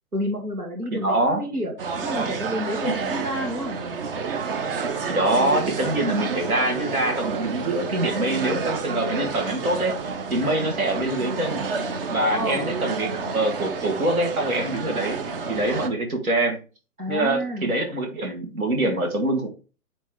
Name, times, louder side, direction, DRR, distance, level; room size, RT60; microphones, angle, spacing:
voice 1, 0.1-1.7 2.0-3.8 12.3-12.7 17.0-17.7, equal, 80° right, 1 dB, 1.8 m, -29 dB
voice 2, 0.9-1.4 3.0-3.1 5.1-9.9 10.3-11.6 12.1-16.6 17.1-19.5, right 2 dB, 65° right, 3 dB, 2.0 m, -24 dB
sound 1, 1.8-15.9, right 5 dB, 40° right, 0.7 m, -29 dB
9.1 x 3.2 x 3.6 m, 0.34 s
figure-of-eight pair, 120°, 45 cm